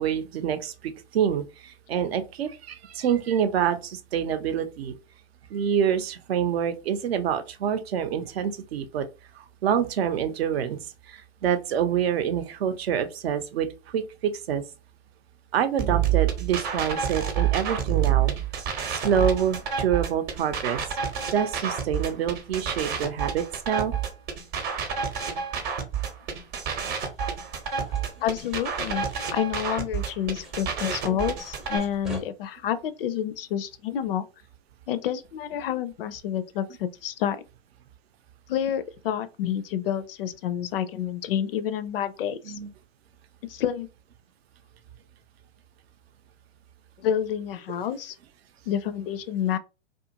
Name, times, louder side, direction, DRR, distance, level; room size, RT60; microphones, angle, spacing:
voice 1, 0.0-4.9 5.5-9.1 9.3-10.8 11.1-14.6 15.5-18.3 18.9-21.0 21.3-23.9 31.1-31.2 42.4-42.7, right 8 dB, 60° right, 0.6 m, -27 dB
sound 1, 15.8-31.8, right 8 dB, 35° right, 0.8 m, -28 dB
sound 2, 26.9-30.1 30.4-32.2, equal, ahead, 0.5 m, -45 dB
voice 2, 28.2-34.2 34.9-37.4 38.5-42.6 43.5-43.9 47.0-48.1 48.7-49.6, left 9 dB, 55° left, 0.4 m, -29 dB
2.5 x 2.4 x 2.7 m
hypercardioid pair, 110°, 35 cm